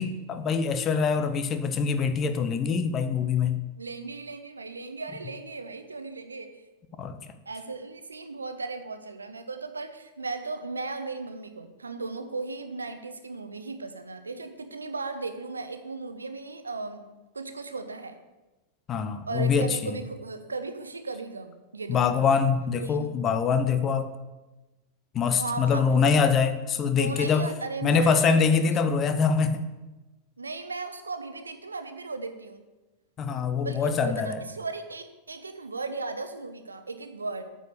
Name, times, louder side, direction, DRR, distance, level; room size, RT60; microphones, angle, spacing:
voice 1, 0.0-3.6 7.0-7.2 18.9-20.0 21.9-24.1 25.1-27.5 27.8-29.7 33.2-34.4, left 5 dB, 30° left, 10 dB, 0.7 m, -24 dB
voice 2, 3.8-6.6 7.5-17.1 17.3-18.2 19.2-22.2 22.8-23.2 25.4-26.1 27.0-28.6 28.9-29.0 30.4-32.6 33.6-37.5, right 3 dB, 75° right, 9 dB, 0.7 m, -36 dB
9.0 x 4.9 x 6.8 m, 1.1 s
figure-of-eight pair, 90°, 0 cm